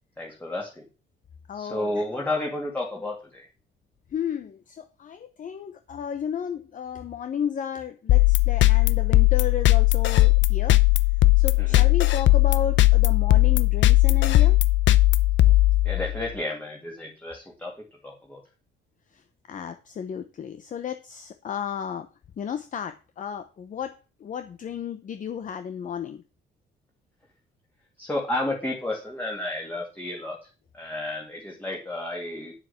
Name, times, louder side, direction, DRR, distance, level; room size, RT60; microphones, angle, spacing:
voice 1, 0.2-0.9 1.5-3.5 11.6-11.8 15.5-15.6 15.8-17.7 18.0-18.4 28.0-30.5 30.7-32.5, left 1 dB, 10° left, -1 dB, 2.5 m, -32 dB
voice 2, 1.5-2.0 4.1-10.8 11.4-14.6 19.5-22.1 22.4-26.2, left 8 dB, 40° left, 9 dB, 0.9 m, -33 dB
sound 1, 8.1-16.3, left 17 dB, 70° left, 0.7 m, -18 dB
9.7 x 7.4 x 5.8 m, 0.32 s
cardioid pair, 145°, 20 cm